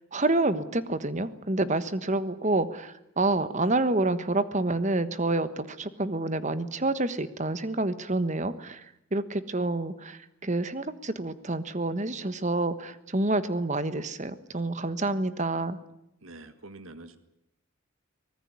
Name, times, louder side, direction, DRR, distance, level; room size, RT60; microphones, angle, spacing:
voice 1, 0.1-8.8 9.1-15.8, right 2 dB, 35° right, 13 dB, 1.3 m, -28 dB
voice 2, 16.2-17.2, right 2 dB, 75° right, 11 dB, 1.8 m, -45 dB
24.5 x 19.5 x 9.7 m, 0.81 s
head